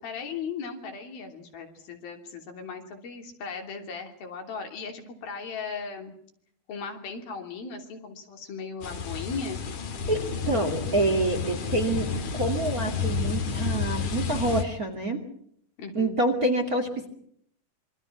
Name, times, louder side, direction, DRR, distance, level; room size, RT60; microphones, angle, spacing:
voice 1, 0.0-6.1 6.7-9.6 15.8-16.2, left 5 dB, 80° left, 4 dB, 4.9 m, -37 dB
sound 1, 8.8-14.6, left 5 dB, 55° left, 3.1 m, -30 dB
voice 2, 10.1-12.1 12.3-15.2 15.9-17.1, right 2 dB, 30° right, 5 dB, 2.3 m, -27 dB
26.5 x 24.0 x 6.0 m, 0.68 s
omnidirectional pair, 4.2 m